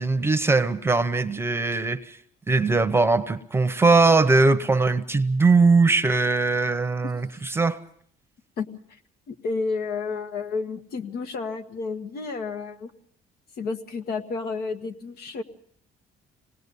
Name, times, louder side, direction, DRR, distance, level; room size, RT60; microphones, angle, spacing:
voice 1, 0.0-2.2 2.5-7.8, right 3 dB, 15° right, 0.9 m, -20 dB
voice 2, 9.3-12.9 13.6-15.4, left 4 dB, 65° left, 1.6 m, -31 dB
26.0 x 19.0 x 5.4 m
cardioid pair, 110°, 17 cm